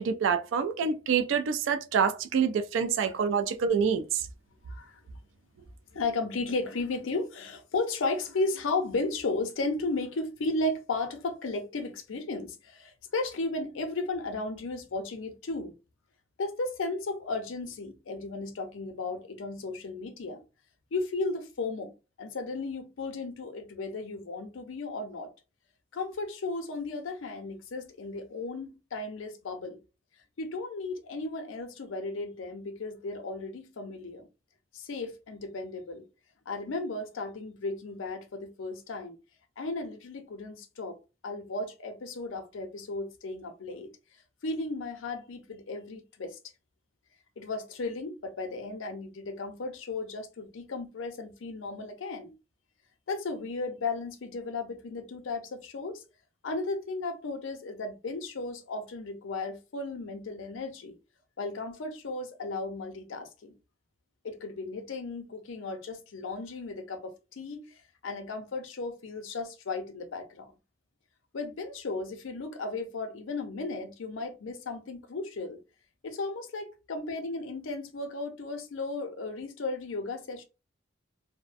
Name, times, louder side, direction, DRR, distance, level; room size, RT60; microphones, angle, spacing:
voice 1, 0.0-4.2, right 6 dB, 70° right, 0.3 m, -27 dB
voice 2, 4.6-5.0 5.9-15.7 16.4-20.4 20.9-21.9 22.2-25.3 25.9-29.8 30.4-34.3 34.7-36.1 36.5-39.2 39.6-41.0 41.2-43.9 44.4-46.4 47.4-52.3 53.1-56.0 56.4-61.0 61.4-63.6 64.2-67.7 68.0-70.5 71.3-75.6 76.0-80.4, left 3 dB, 85° left, 0.5 m, -35 dB
2.5 x 2.1 x 2.4 m
head